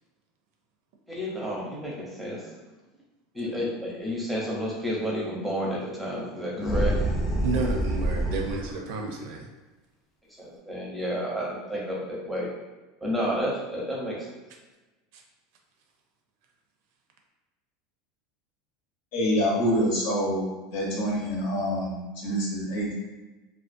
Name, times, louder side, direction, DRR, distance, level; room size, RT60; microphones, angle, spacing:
voice 1, 1.1-2.5 3.3-6.9 10.4-12.5 13.0-14.2, equal, 5° right, -4 dB, 0.7 m, -31 dB
sound 1, 6.6-8.8, right 1 dB, 30° left, 0.4 m, -26 dB
voice 2, 7.4-9.5 15.1-15.2, right 3 dB, 70° right, 2 dB, 0.4 m, -31 dB
voice 3, 19.1-20.5 20.7-22.9, equal, 70° left, -4 dB, 0.9 m, -26 dB
2.4 x 2.2 x 2.5 m, 1.2 s
supercardioid pair, 135°, 0 cm